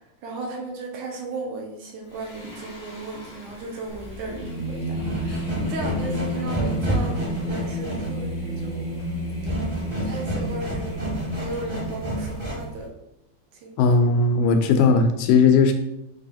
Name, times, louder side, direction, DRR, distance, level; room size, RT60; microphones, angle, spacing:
voice 1, 0.2-7.2 7.5-8.9 9.4-9.7 10.0-12.9 13.5-14.0, right 2 dB, 70° right, 1 dB, 2.3 m, -36 dB
Singing, 2.1-12.5, left 1 dB, 50° left, 0.8 m, -32 dB
sound 1, 3.9-12.8, right 1 dB, 20° right, 0.7 m, -30 dB
voice 2, 13.8-15.7, left 4 dB, 90° left, 6 dB, 2.4 m, -17 dB
8.4 x 3.1 x 4.2 m, 0.87 s
omnidirectional pair, 3.9 m